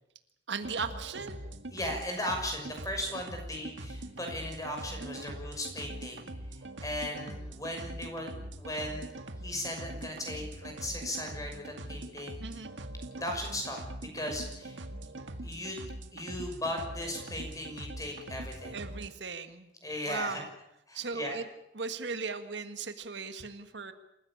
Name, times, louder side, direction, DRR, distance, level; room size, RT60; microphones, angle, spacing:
voice 1, 0.5-1.4 5.0-5.4 12.4-12.8 18.7-19.7 20.1-20.5 20.9-21.4 21.7-23.9, right 4 dB, 70° right, 9 dB, 1.7 m, -37 dB
sound 1, 0.6-19.1, right 1 dB, 90° right, 2.0 m, -43 dB
voice 2, 1.7-6.2 6.8-8.3 8.6-9.0 9.4-12.6 13.2-13.8 14.1-14.8 15.4-15.8 16.1-18.8 19.8-20.4 20.9-21.4, left 1 dB, 20° left, 3 dB, 6.3 m, -37 dB
27.5 x 15.5 x 8.7 m, 0.84 s
head